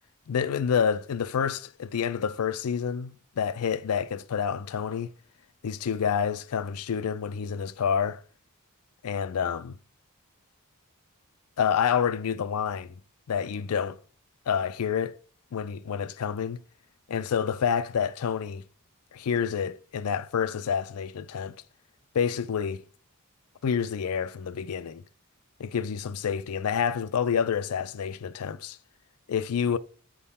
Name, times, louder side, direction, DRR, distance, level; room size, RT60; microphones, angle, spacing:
voice 1, 0.3-5.1 5.6-8.2 9.0-9.8 11.6-12.9 13.3-14.0 14.5-15.2 15.5-16.6 17.1-18.6 19.1-21.5 22.1-22.8 23.6-25.0 25.6-28.8 29.3-29.8, left 7 dB, 80° left, 0.4 m, -28 dB
9.2 x 3.6 x 4.2 m
head